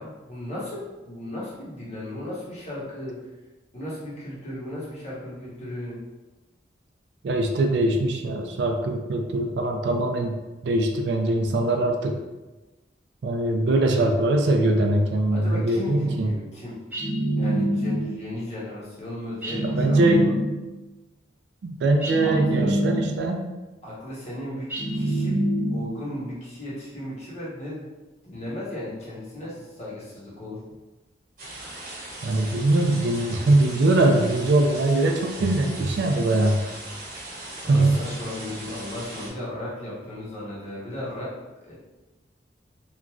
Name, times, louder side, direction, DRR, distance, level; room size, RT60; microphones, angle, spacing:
voice 1, 0.0-3.2 3.7-6.0 15.3-16.8 17.4-20.3 22.0-22.8 23.8-24.7 24.9-25.3 25.7-27.9 28.2-30.6 37.6-41.3 41.6-41.7, left 1 dB, 35° left, -7 dB, 0.9 m, -35 dB
voice 2, 7.2-12.2 13.2-16.3 19.6-20.3 21.6-23.4 32.2-36.6 37.7-38.0, right 2 dB, 70° right, 4 dB, 0.3 m, -22 dB
sound 1, 16.9-18.3 19.4-20.7 22.0-23.4 24.7-26.1, right 1 dB, 10° right, 0.4 m, -25 dB
sound 2, 31.4-39.3, right 1 dB, 45° right, 0.9 m, -39 dB
3.0 x 2.5 x 2.3 m, 1.1 s
head